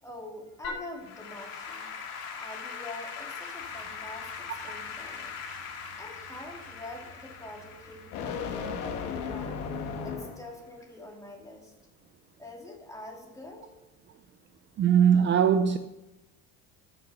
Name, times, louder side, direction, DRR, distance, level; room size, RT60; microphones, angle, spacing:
voice 1, 0.0-1.9 2.4-5.3 6.0-8.8 9.3-9.6 10.0-11.7 12.4-13.7, left 2 dB, 10° left, 2.6 m, -45 dB
Applause / Keyboard (musical), 0.6-10.0, left 5 dB, 55° left, 2.6 m, -41 dB
sound 1, 3.6-10.6, left 5 dB, 75° left, 1.8 m, -38 dB
voice 2, 14.8-15.8, right 8 dB, 40° right, 0.5 m, -20 dB
14.0 x 6.6 x 5.6 m
cardioid pair, 140°, 31 cm